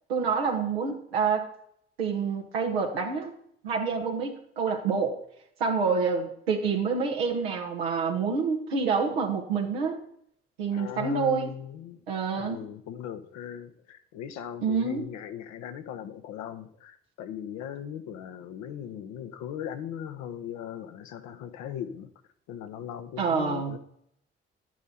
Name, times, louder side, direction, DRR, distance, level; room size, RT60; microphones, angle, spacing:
voice 1, 0.1-1.5 2.0-3.3 3.6-5.2 5.6-10.0 10.6-11.5 12.1-12.6 14.6-15.1 23.2-23.8, right 5 dB, 90° right, 1 dB, 1.4 m, -27 dB
voice 2, 10.7-12.0 12.4-22.1 22.5-23.8, left 9 dB, 75° left, 9 dB, 1.0 m, -38 dB
12.0 x 9.1 x 4.3 m, 0.69 s
hypercardioid pair, 40°, 29 cm